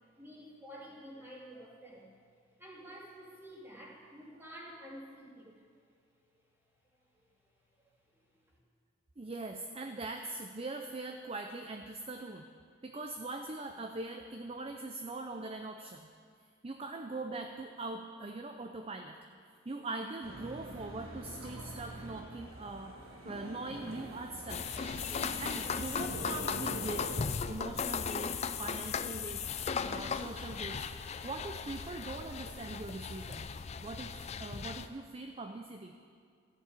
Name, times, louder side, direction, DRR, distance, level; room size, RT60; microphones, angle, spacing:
voice 1, 0.2-2.1 2.6-5.6 7.1-7.3 8.3-8.6, equal, 10° right, -5 dB, 2.4 m, -50 dB
voice 2, 9.2-12.5 12.8-16.1 16.6-19.4 19.7-23.0 23.2-24.6 25.4-27.1 27.5-33.5 33.8-35.9, right 2 dB, 25° right, 5 dB, 0.5 m, -42 dB
sound 1, 20.2-27.2, right 1 dB, 85° right, 1.8 m, -45 dB
sound 2, 24.5-34.9, left 6 dB, 30° left, 0.4 m, -37 dB
14.0 x 6.9 x 8.5 m, 2.2 s
head